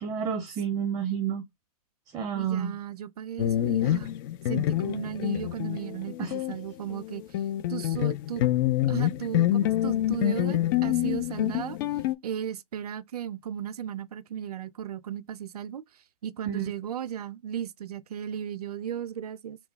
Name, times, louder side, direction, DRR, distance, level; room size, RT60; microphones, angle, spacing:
voice 1, 0.0-1.4 2.1-2.8 6.2-6.3 16.5-16.7, right 8 dB, 20° right, 0.6 m, -30 dB
voice 2, 2.3-4.1 4.5-7.2 7.7-8.4 8.9-11.8 12.2-15.8 16.2-19.6, right 9 dB, 80° right, 0.4 m, -35 dB
sound 1, 3.4-6.6 6.9-12.1, left 13 dB, 35° left, 0.4 m, -27 dB
3.0 x 2.2 x 3.9 m
hypercardioid pair, 125°, 19 cm